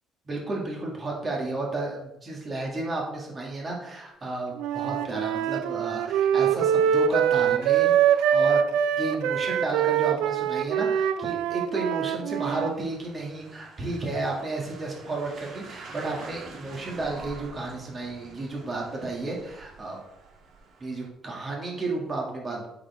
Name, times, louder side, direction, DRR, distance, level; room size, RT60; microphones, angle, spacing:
voice 1, 0.3-8.6 9.0-20.0 20.8-22.7, right 2 dB, 30° right, -2 dB, 2.6 m, -32 dB
Wind instrument woodwind instrument, 4.6-12.7, right 9 dB, 90° right, 0.4 m, -24 dB
sound 1, 12.4-21.1, right 3 dB, 55° right, 1.9 m, -47 dB
8.5 x 7.1 x 3.7 m, 0.88 s
cardioid pair, 115°, 0 cm